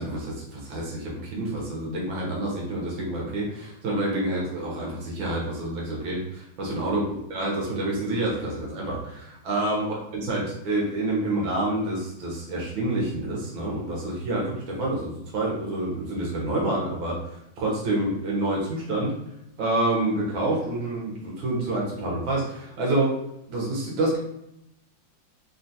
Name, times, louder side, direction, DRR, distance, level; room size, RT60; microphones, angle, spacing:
voice 1, 0.0-17.3 17.6-19.2 19.6-23.1 23.5-24.2, right 2 dB, 70° right, -3 dB, 1.5 m, -28 dB
3.6 x 2.3 x 2.6 m, 0.80 s
omnidirectional pair, 2.3 m